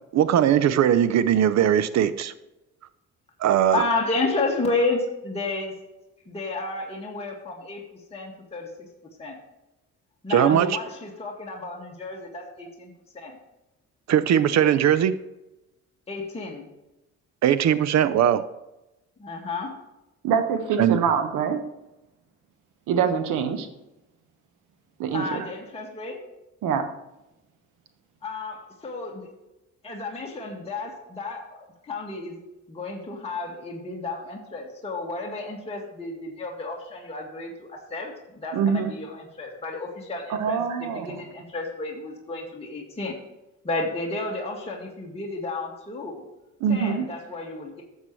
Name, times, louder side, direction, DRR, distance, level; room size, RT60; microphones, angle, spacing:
voice 1, 0.1-2.3 3.4-3.8 10.3-10.8 14.1-15.2 17.4-18.4 20.8-21.0, right 10 dB, 65° right, 14 dB, 0.7 m, -20 dB
voice 2, 3.7-5.7 6.3-8.7 9.2-9.4 10.2-13.4 16.1-16.7 19.2-19.8 25.1-26.2 28.2-29.3 29.8-32.4 32.7-43.2 43.6-46.2 46.7-47.8, left 3 dB, 20° left, -3 dB, 1.9 m, -32 dB
voice 3, 20.2-21.6 22.9-23.7 25.0-25.4 26.6-26.9 38.5-38.9 40.4-41.2 46.6-47.1, right 7 dB, 90° right, 8 dB, 1.2 m, -24 dB
12.5 x 7.4 x 3.2 m, 0.96 s
cardioid pair, 90°, 30 cm